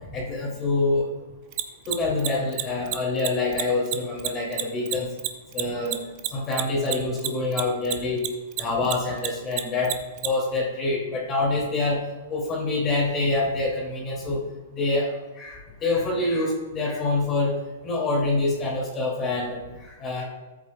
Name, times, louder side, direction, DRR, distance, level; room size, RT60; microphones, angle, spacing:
voice 1, 0.1-1.1 1.9-5.1 5.5-6.0 6.3-8.2 8.6-9.9 10.2-12.0 12.3-14.4 14.7-15.1 15.4-17.5 17.8-20.2, left 2 dB, 25° left, -3 dB, 2.4 m, -26 dB
Mechanisms, 1.5-8.3 8.5-10.3, right 17 dB, 40° right, 0.6 m, -27 dB
13.0 x 7.4 x 2.2 m, 1.2 s
hypercardioid pair, 150°, 0 cm